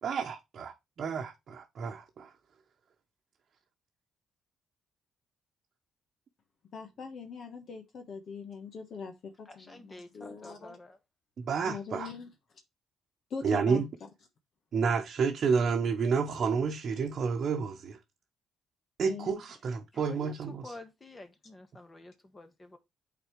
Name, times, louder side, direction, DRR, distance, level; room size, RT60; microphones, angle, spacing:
voice 1, 0.0-2.3 11.4-12.1 13.4-13.9 14.7-18.0 19.0-20.6, right 5 dB, 55° right, 0.9 m, -30 dB
voice 2, 6.7-10.7 11.7-12.3 13.3-13.8 19.0-19.4, left 5 dB, 60° left, 1.3 m, -42 dB
voice 3, 9.4-11.0 19.9-22.8, left 2 dB, 25° left, 1.5 m, -49 dB
8.7 x 4.2 x 3.2 m
cardioid pair, 90°, 0 cm